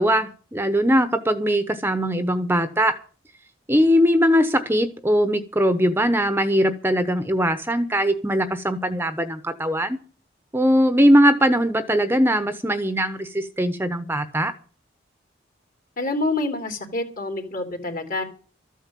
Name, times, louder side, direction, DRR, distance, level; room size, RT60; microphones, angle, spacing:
voice 1, 0.0-3.0 3.7-10.0 10.5-14.5, equal, 10° right, 10 dB, 1.0 m, -20 dB
voice 2, 16.0-18.2, left 2 dB, 50° left, 5 dB, 3.3 m, -27 dB
13.5 x 9.1 x 7.6 m, 0.38 s
head